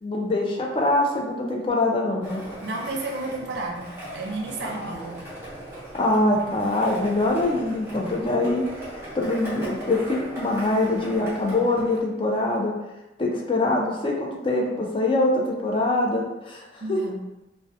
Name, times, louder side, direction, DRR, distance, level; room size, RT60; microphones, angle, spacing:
voice 1, 0.0-2.4 4.7-5.0 5.9-8.6 9.1-12.7 13.2-17.0, left 2 dB, 30° left, 0 dB, 0.3 m, -24 dB
Skateboard, 2.2-12.0, right 1 dB, 15° right, 0.8 m, -38 dB
voice 2, 2.6-5.2 16.8-17.2, right 2 dB, 70° right, 1 dB, 0.4 m, -32 dB
2.2 x 2.1 x 2.7 m, 0.97 s
head